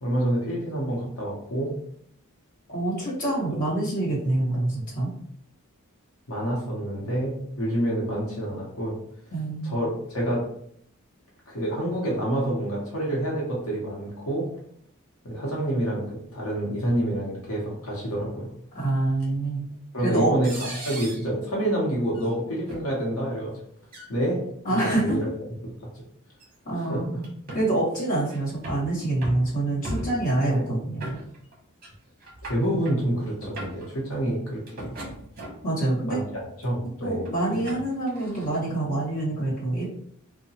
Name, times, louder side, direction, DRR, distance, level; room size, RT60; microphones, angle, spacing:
voice 1, 0.0-1.7 6.3-9.0 9.6-10.5 11.5-14.5 15.2-18.5 19.9-20.5 20.8-23.6 24.1-24.4 24.7-25.3 25.6-25.7 26.8-27.0 30.4-30.7 32.4-34.9 36.1-36.2 36.6-37.2, right 1 dB, 90° left, -4 dB, 0.9 m, -27 dB
voice 2, 2.7-5.1 9.3-9.8 18.7-19.7 20.0-20.4 24.6-25.2 26.6-27.2 27.5-31.2 35.6-36.2 37.0-39.8, right 2 dB, 40° left, -7 dB, 1.3 m, -26 dB
sound 1, 19.2-19.3 20.4-21.3 22.1-22.3 22.7-22.8 23.8-24.1 24.8-25.2 26.4-26.5 27.2-27.7 28.3-28.9 29.2-29.5 29.8-30.3 31.0-31.5 31.8-31.9 32.2-33.0 33.4-33.9 34.7-35.7 36.3-36.7 37.3-38.6, right 1 dB, 45° right, 0.9 m, -37 dB
2.8 x 2.1 x 2.8 m, 0.67 s
head